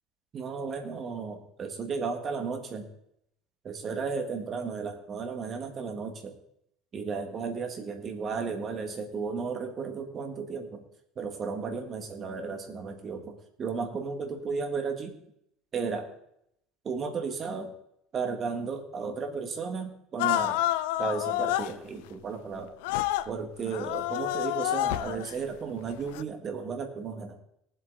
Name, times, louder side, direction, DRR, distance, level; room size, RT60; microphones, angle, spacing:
voice 1, 0.3-2.9 3.6-6.4 6.9-10.8 11.2-15.2 15.7-16.1 16.8-17.7 18.1-20.6 21.0-22.7 23.3-27.4, right 5 dB, 30° right, 6 dB, 1.7 m, -34 dB
Content warning, 20.2-21.7 22.8-23.3 23.7-25.3 26.1-26.2, left 15 dB, 90° left, 0.5 m, -28 dB
18.5 x 8.0 x 4.0 m, 0.76 s
cardioid pair, 145°, 0 cm